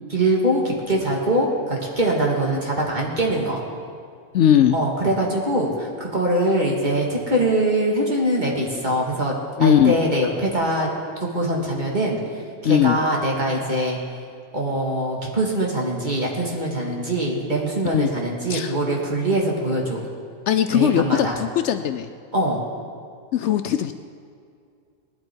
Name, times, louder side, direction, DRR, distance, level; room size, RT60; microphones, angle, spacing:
voice 1, 0.1-3.6 4.7-9.3 9.6-10.9 11.2-12.2 12.6-14.0 14.5-20.0 20.7-21.4 22.3-22.6, right 1 dB, 35° right, -2 dB, 2.2 m, -23 dB
voice 2, 4.3-4.8 9.6-10.0 12.6-13.0 17.8-18.1 18.5-18.7 20.5-22.1 23.3-23.9, left 10 dB, 70° left, 9 dB, 0.8 m, -19 dB
19.0 x 11.5 x 4.6 m, 2.3 s
omnidirectional pair, 1.3 m